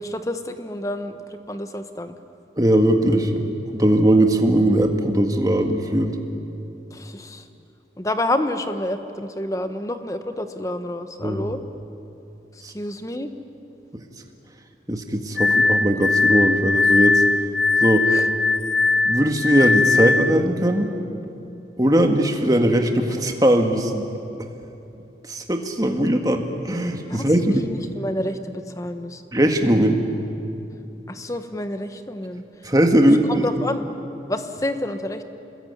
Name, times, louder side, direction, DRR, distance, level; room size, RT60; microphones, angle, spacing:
voice 1, 0.0-2.1 6.9-7.4 8.0-11.6 12.7-13.3 18.1-18.3 25.9-26.0 27.1-29.2 31.1-32.4 33.1-33.9 34.3-35.2, left 1 dB, 20° left, 8 dB, 1.2 m, -29 dB
voice 2, 2.6-3.5 3.7-6.1 11.2-11.5 12.6-12.7 14.9-17.2 17.8-18.1 19.0-20.9 21.8-24.1 25.3-27.7 29.3-30.0 32.6-33.5, right 1 dB, 20° right, 4 dB, 1.8 m, -19 dB
Glass, 15.4-20.4, left 3 dB, 75° left, 0.8 m, -20 dB
27.0 x 21.0 x 9.6 m, 2.8 s
head